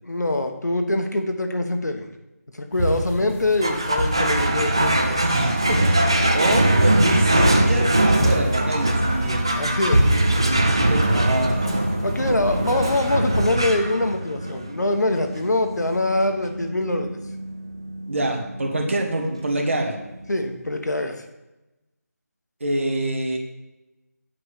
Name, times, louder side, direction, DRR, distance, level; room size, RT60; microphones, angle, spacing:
voice 1, 0.0-2.1 2.5-5.2 9.5-10.0 12.0-17.1 20.3-21.2, left 2 dB, 90° left, 6 dB, 1.3 m, -24 dB
sound 1, 2.7-13.5, equal, 30° left, 1.8 m, -28 dB
sound 2, 3.6-20.3, right 1 dB, 15° right, 0.3 m, -23 dB
voice 2, 5.2-6.1 6.3-9.8 10.4-12.6 18.1-20.0 22.6-23.4, right 1 dB, 45° right, 1 dB, 1.7 m, -26 dB
8.8 x 4.8 x 5.0 m, 1.0 s
figure-of-eight pair, 170°, 9 cm